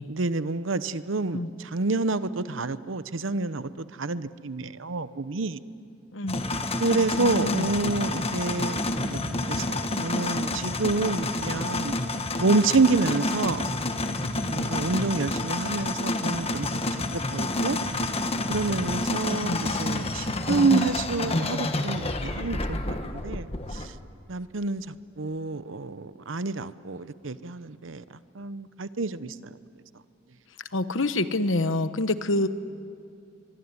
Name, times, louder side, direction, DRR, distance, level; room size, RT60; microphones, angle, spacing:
voice 1, 0.1-3.7 4.0-5.6 6.8-11.9 12.4-13.7 14.5-16.8 17.3-17.8 18.5-23.9 24.3-24.9 25.2-28.0 28.3-29.5, right 3 dB, 85° right, 0.9 m, -28 dB
sound 1, 6.3-23.9, left 2 dB, 30° left, 1.4 m, -29 dB
voice 2, 7.1-7.7 19.4-19.6 30.7-32.5, left 2 dB, 80° left, 1.2 m, -27 dB
24.0 x 22.5 x 9.7 m
head